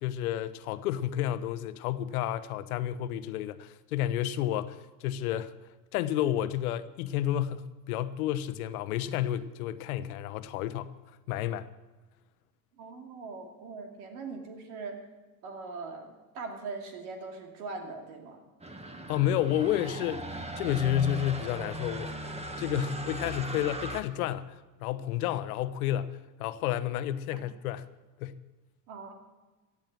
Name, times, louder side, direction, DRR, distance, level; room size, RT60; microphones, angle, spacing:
voice 1, 0.0-5.5 5.9-10.9 11.3-11.7 19.1-20.3 20.6-27.9 28.2-28.4, left 12 dB, 85° left, 0.9 m, -31 dB
voice 2, 12.8-15.0 15.4-18.4 27.3-27.4 28.9-29.1, right 4 dB, 80° right, 2.5 m, -41 dB
sound 1, 18.6-24.0, right 2 dB, 15° right, 1.6 m, -38 dB
15.5 x 8.5 x 7.6 m
hypercardioid pair, 75°, 43 cm